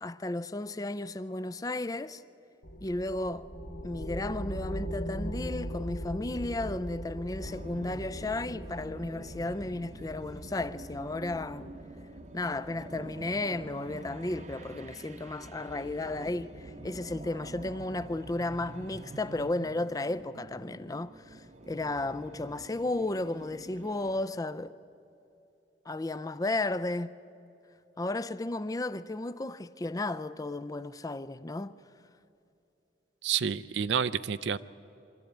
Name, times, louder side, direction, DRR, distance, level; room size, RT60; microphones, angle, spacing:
voice 1, 0.0-2.2 2.8-3.5 3.8-11.7 12.3-24.7 25.9-27.1 28.0-31.7, left 2 dB, 20° left, 0.4 m, -34 dB
sound 1, 2.6-12.6, equal, 85° left, 3.0 m, -40 dB
sound 2, 7.5-24.3, right 2 dB, 40° right, 0.8 m, -47 dB
voice 2, 33.2-34.6, right 7 dB, 75° right, 0.5 m, -29 dB
23.5 x 13.5 x 9.0 m
head